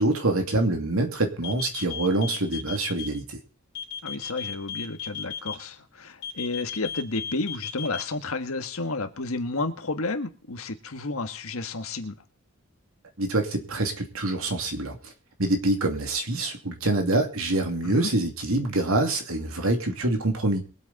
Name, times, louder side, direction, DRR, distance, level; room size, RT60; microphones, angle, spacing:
voice 1, 0.0-3.4 13.2-15.1 15.4-20.6, right 2 dB, 75° right, 4 dB, 2.6 m, -25 dB
sound 1, 1.4-3.1 3.8-5.6 6.2-8.0, left 7 dB, 55° left, 3.0 m, -34 dB
voice 2, 4.0-12.1 17.8-18.1, left 3 dB, 80° left, 7 dB, 1.5 m, -31 dB
22.5 x 8.2 x 4.1 m, 0.37 s
head